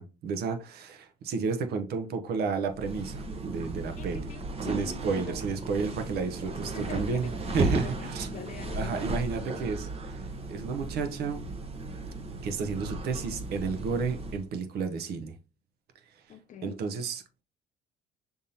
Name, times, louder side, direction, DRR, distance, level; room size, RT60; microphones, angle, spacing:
voice 1, 0.0-4.3 4.6-7.3 7.5-8.3 8.7-10.2 10.5-11.4 12.4-15.4 16.6-17.4, right 5 dB, 70° right, 0.8 m, -32 dB
sound 1, 2.7-14.4, right 2 dB, 35° right, 0.9 m, -35 dB
voice 2, 4.0-5.4 6.7-9.1 16.3-16.8, left 7 dB, 50° left, 0.6 m, -43 dB
5.5 x 3.5 x 2.8 m
cardioid pair, 110°, 17 cm